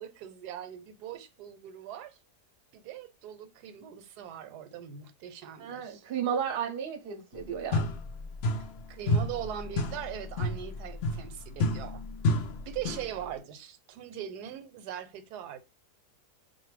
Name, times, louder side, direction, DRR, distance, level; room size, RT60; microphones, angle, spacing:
voice 1, 0.0-2.2 2.7-6.0 8.9-12.0 12.7-15.6, right 10 dB, 85° right, 1.2 m, -41 dB
voice 2, 5.6-7.9, right 8 dB, 50° right, 0.7 m, -33 dB
sound 1, 7.3-7.4 7.7-8.8 9.1-13.2, left 2 dB, 85° left, 0.5 m, -30 dB
4.1 x 2.5 x 3.2 m
omnidirectional pair, 1.7 m